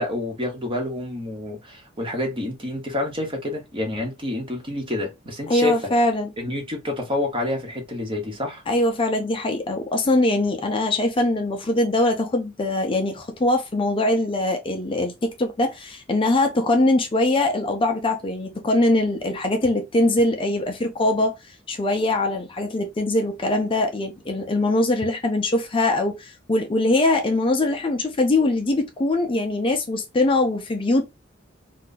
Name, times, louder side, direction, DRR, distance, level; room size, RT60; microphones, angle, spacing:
voice 1, 0.0-5.7 6.4-8.6, left 1 dB, 30° right, 1.0 m, -28 dB
voice 2, 5.5-6.3 8.7-31.1, left 2 dB, 25° left, 0.5 m, -22 dB
2.6 x 2.3 x 3.8 m
head